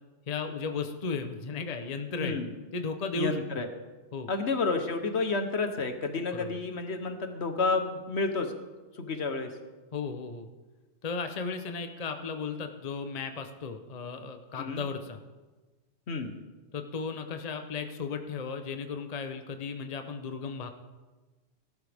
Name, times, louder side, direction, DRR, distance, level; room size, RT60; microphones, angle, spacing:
voice 1, 0.3-2.4 2.7-3.4 4.1-4.3 6.3-6.6 9.9-10.5 11.0-15.2 16.7-20.7, left 4 dB, 35° left, 6 dB, 0.8 m, -35 dB
voice 2, 3.1-3.7 4.3-8.5 8.9-9.5 14.6-14.8 16.1-16.3, left 3 dB, 65° left, 7 dB, 1.3 m, -30 dB
17.5 x 12.0 x 3.5 m, 1.2 s
omnidirectional pair, 1.2 m